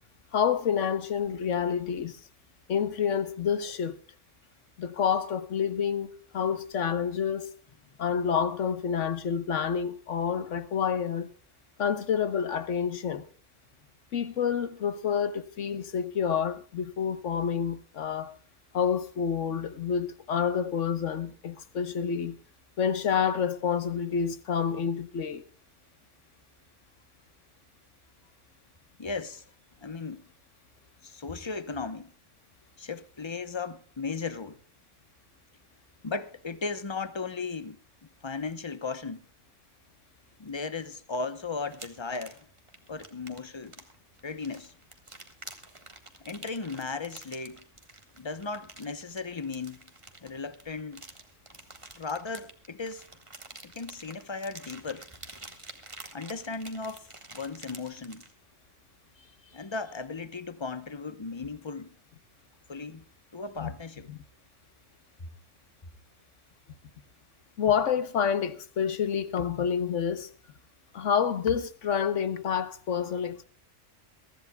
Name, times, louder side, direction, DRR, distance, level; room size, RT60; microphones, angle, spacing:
voice 1, 0.3-2.2 2.7-3.9 4.8-7.5 8.0-11.3 11.8-13.2 14.1-18.3 18.7-22.4 22.8-25.4 63.6-63.7 64.1-64.2 67.6-70.3 70.9-73.5, left 7 dB, 80° left, 1.4 m, -28 dB
voice 2, 29.0-29.4 29.8-30.2 31.0-32.1 32.8-34.6 36.0-37.8 38.2-39.3 40.4-42.5 42.9-43.7 44.2-44.7 46.2-47.6 48.2-49.9 50.2-51.0 52.0-53.0 53.6-55.0 56.1-58.2 59.2-61.9 62.7-63.0 63.3-64.1, left 4 dB, 25° left, 0.8 m, -36 dB
sound 1, 41.7-58.3, right 2 dB, 25° right, 1.6 m, -48 dB
23.0 x 14.0 x 2.3 m
omnidirectional pair, 1.3 m